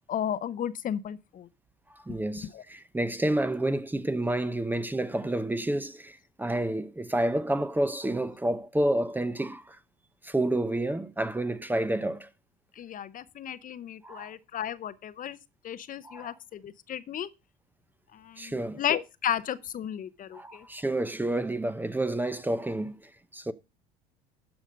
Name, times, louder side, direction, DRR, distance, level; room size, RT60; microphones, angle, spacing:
voice 1, 0.1-1.5 2.5-2.6 12.8-15.4 15.6-17.3 18.1-20.7, left 10 dB, 45° left, 0.8 m, -34 dB
voice 2, 1.9-9.8 10.2-12.3 14.0-14.3 16.0-16.4 18.4-18.8 20.3-23.5, right 1 dB, 10° right, 0.7 m, -29 dB
12.0 x 5.0 x 5.1 m
hypercardioid pair, 70°, 20 cm